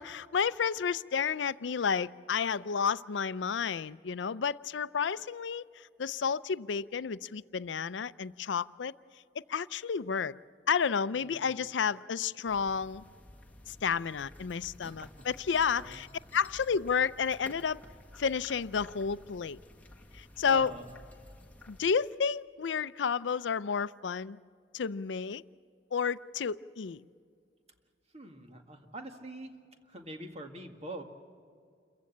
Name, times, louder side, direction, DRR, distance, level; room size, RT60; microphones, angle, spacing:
voice 1, 0.0-5.6 6.0-8.9 9.4-10.3 10.7-13.0 13.7-16.1 16.3-17.8 18.2-19.6 20.1-20.7 21.7-24.4 24.7-25.4 25.9-27.0, left 6 dB, 80° left, 16 dB, 0.5 m, -31 dB
voice 2, 11.2-11.6 15.0-15.1 15.7-16.0 20.5-20.9 28.1-29.5 29.9-31.0, right 1 dB, 35° right, 5 dB, 1.9 m, -44 dB
sound 1, 12.4-21.9, left 1 dB, 10° left, 1.6 m, -53 dB
28.5 x 15.0 x 8.6 m, 2.2 s
head